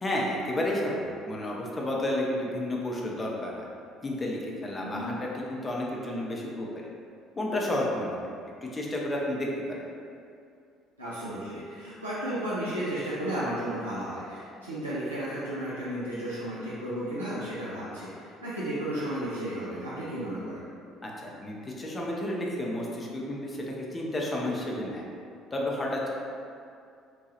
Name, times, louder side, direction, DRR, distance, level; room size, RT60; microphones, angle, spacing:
voice 1, 0.0-3.6 4.0-6.9 7.4-8.3 8.6-9.8 21.0-25.0 25.5-26.1, left 1 dB, 25° left, -3 dB, 0.5 m, -31 dB
voice 2, 4.8-5.2 11.0-20.6, right 1 dB, 85° right, -10 dB, 0.4 m, -33 dB
2.9 x 2.3 x 2.8 m, 2.4 s
figure-of-eight pair, 55°, 0 cm